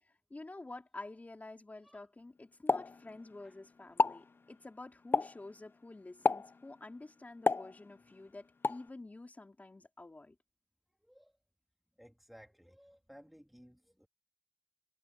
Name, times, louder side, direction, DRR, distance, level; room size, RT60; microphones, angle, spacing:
voice 1, 0.3-10.3, left 2 dB, 35° left, 4.1 m, -49 dB
Explosion, 2.7-3.5 3.9-4.3 5.1-5.5 6.2-6.6 7.5-8.2 8.6-8.9, left 4 dB, 55° left, 0.6 m, -31 dB
voice 2, 11.0-11.4 12.0-14.1, equal, ahead, 3.2 m, -58 dB
wide cardioid pair, 85°, 5 cm